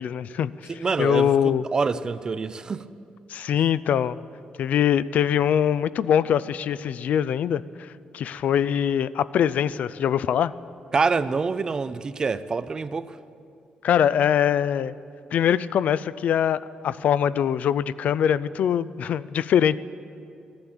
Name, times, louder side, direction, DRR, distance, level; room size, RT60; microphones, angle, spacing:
voice 1, 0.0-1.6 3.3-4.2 4.6-10.5 13.8-14.9 15.3-19.8, left 9 dB, 60° left, 0.3 m, -23 dB
voice 2, 0.8-2.8 10.9-13.1, right 4 dB, 25° right, 0.4 m, -26 dB
14.0 x 11.5 x 8.9 m
wide cardioid pair, 170°, 3 cm